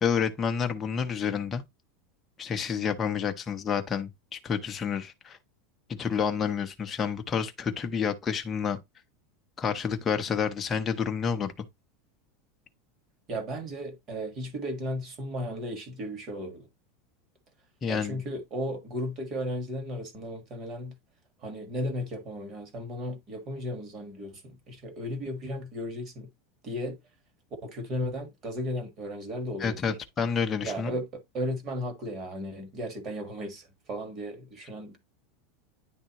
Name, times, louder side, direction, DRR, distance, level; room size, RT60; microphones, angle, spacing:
voice 1, 0.0-1.6 2.4-5.4 5.9-8.8 9.6-11.6 17.8-18.2 29.6-31.0, left 6 dB, 15° left, 0.7 m, -29 dB
voice 2, 13.3-16.7 17.9-21.0 21.4-26.3 26.6-27.0 27.6-30.0 30.6-35.0, equal, 25° right, 1.4 m, -35 dB
10.0 x 3.5 x 2.9 m
supercardioid pair, 180°, 0 cm